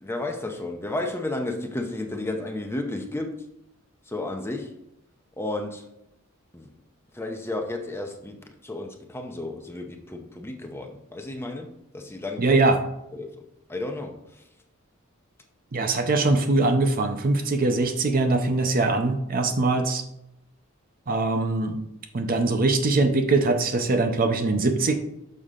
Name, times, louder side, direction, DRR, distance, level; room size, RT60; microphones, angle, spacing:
voice 1, 0.0-3.5 4.1-4.7 5.4-5.9 6.5-6.7 7.1-8.4 8.6-12.6 13.1-13.3 13.7-14.4, left 2 dB, 10° left, 3 dB, 0.7 m, -32 dB
voice 2, 12.4-12.8 15.7-20.0 21.1-21.8 22.1-24.9, right 3 dB, 40° right, 6 dB, 0.6 m, -22 dB
6.6 x 5.3 x 3.7 m, 0.83 s
head